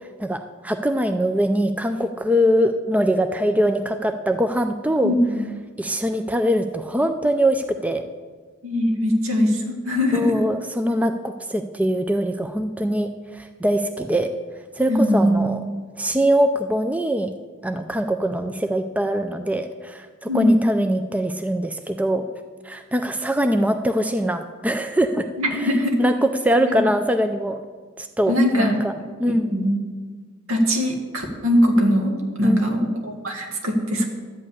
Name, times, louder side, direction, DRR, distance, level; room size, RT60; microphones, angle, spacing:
voice 1, 0.2-5.1 5.8-8.0 10.1-14.3 14.8-15.7 16.0-17.3 17.6-22.3 22.6-25.3 25.6-27.6 28.0-28.9 29.2-29.5 32.4-32.8, equal, 5° right, 7 dB, 0.4 m, -22 dB
voice 2, 5.0-5.5 8.6-10.4 14.9-15.5 20.3-20.6 25.4-26.0 26.7-26.9 28.3-28.8 29.3-29.8 30.5-32.1 32.4-34.0, equal, 75° right, 2 dB, 1.9 m, -21 dB
11.5 x 5.4 x 8.4 m, 1.5 s
head